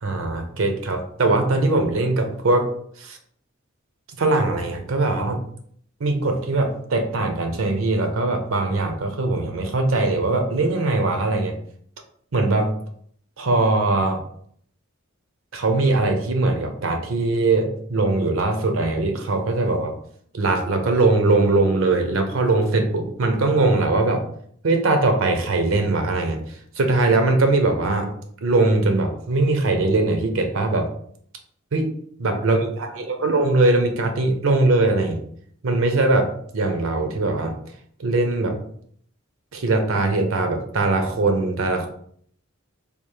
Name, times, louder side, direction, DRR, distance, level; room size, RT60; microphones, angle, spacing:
voice 1, 0.0-2.7 3.0-3.2 4.2-5.4 6.0-11.6 12.3-12.7 13.4-14.2 15.5-19.9 20.3-24.2 24.6-26.4 26.8-28.1 28.4-30.9 31.7-31.9 32.2-35.2 35.6-37.5 38.0-38.6 39.5-41.9, right 2 dB, 75° right, 5 dB, 0.6 m, -21 dB
3.5 x 2.4 x 3.1 m, 0.63 s
head